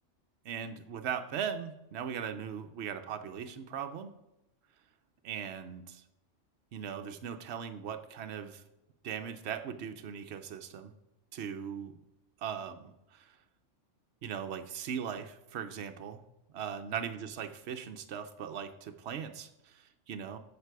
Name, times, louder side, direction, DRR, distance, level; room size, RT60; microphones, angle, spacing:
voice 1, 0.4-4.1 5.2-6.0 6.7-8.6 9.0-10.9 11.3-11.9 12.4-13.4 14.2-16.2 16.5-20.4, right 8 dB, 65° right, 7 dB, 0.9 m, -39 dB
15.0 x 5.2 x 4.7 m, 0.90 s
omnidirectional pair, 1.3 m